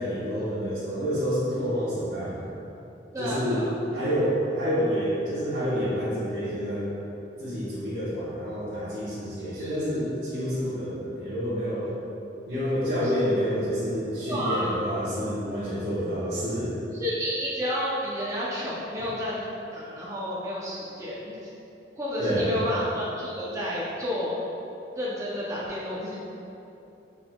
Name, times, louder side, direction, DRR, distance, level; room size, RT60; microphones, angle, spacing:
voice 1, 0.0-2.5 3.2-3.6 3.9-6.9 7.4-11.9 12.5-16.7 22.2-22.6, equal, 70° right, -14 dB, 1.1 m, -28 dB
voice 2, 3.1-3.7 9.5-9.8 13.0-13.1 14.3-14.7 16.9-21.5 22.0-24.4 25.0-26.1, equal, 15° right, -7 dB, 0.5 m, -31 dB
5.8 x 3.7 x 2.2 m, 2.9 s
head